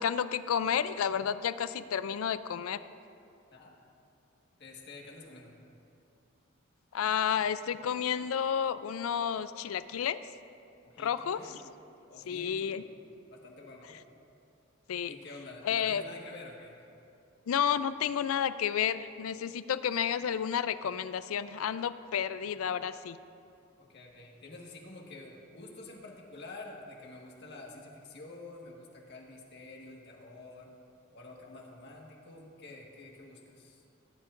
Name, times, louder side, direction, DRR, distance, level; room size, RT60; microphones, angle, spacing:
voice 1, 0.0-2.8 6.9-10.2 11.0-11.4 12.3-12.8 14.9-15.2 15.6-16.0 17.5-23.2, left 8 dB, 90° left, 14 dB, 0.4 m, -31 dB
voice 2, 4.6-5.6 10.8-11.7 12.1-12.8 13.3-14.0 15.1-16.9 23.8-30.7 31.1-33.8, left 2 dB, 55° left, -1 dB, 1.6 m, -48 dB
18.0 x 10.0 x 2.5 m, 2.6 s
head